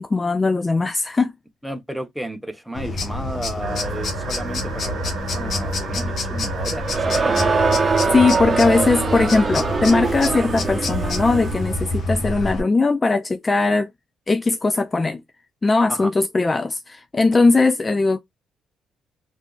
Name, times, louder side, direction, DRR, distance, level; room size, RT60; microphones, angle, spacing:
voice 1, 0.0-1.3 8.1-13.9 14.3-15.2 15.6-18.2, left 3 dB, 30° left, 0.3 m, -19 dB
voice 2, 1.6-7.3 15.9-16.1, right 1 dB, 5° right, 0.8 m, -32 dB
sound 1, 2.7-12.6, left 2 dB, 60° left, 1.0 m, -27 dB
sound 2, 3.6-8.7 9.5-11.9, right 7 dB, 70° right, 0.8 m, -36 dB
Crowd, 6.8-11.8, right 4 dB, 35° right, 0.7 m, -23 dB
3.4 x 2.5 x 2.3 m
supercardioid pair, 60°, 0 cm